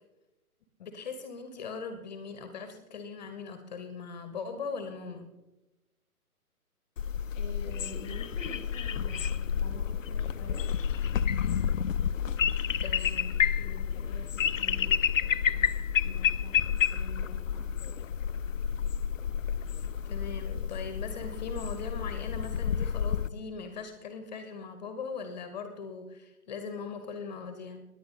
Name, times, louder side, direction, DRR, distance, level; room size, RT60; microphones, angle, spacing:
voice 1, 0.8-5.3 12.8-13.4 20.1-27.8, left 5 dB, 30° left, 8 dB, 1.1 m, -40 dB
sound 1, 7.0-23.3, left 8 dB, 60° left, 0.6 m, -30 dB
voice 2, 7.3-10.7 13.2-18.0, left 1 dB, 10° left, 1 dB, 0.7 m, -47 dB
17.5 x 10.5 x 3.7 m, 1.0 s
figure-of-eight pair, 135°, 45 cm